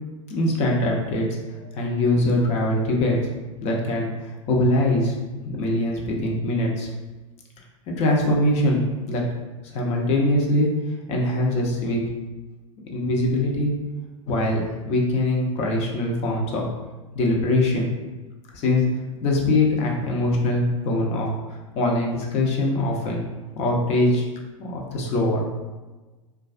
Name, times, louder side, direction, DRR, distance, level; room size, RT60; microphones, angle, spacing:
voice 1, 0.3-1.3 1.7-3.2 3.6-5.2 5.6-6.9 7.9-9.2 9.7-10.7 11.1-12.0 12.9-13.7 14.3-16.6 17.1-17.9 18.5-18.9 19.2-21.3 21.7-23.2 23.5-24.3 24.6-25.4, left 1 dB, 40° left, -1 dB, 0.6 m, -22 dB
2.3 x 2.3 x 2.4 m, 1.2 s
hypercardioid pair, 105°, 17 cm